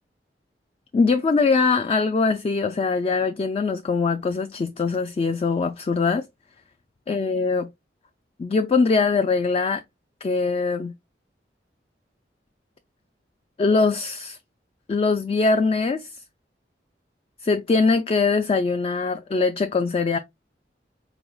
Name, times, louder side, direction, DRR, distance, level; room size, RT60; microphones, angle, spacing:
voice 1, 0.9-6.3 7.1-7.7 8.4-9.8 10.2-10.9 13.6-14.4 14.9-16.1 17.4-20.2, left 4 dB, 35° left, 0.3 m, -22 dB
4.3 x 3.5 x 2.2 m
head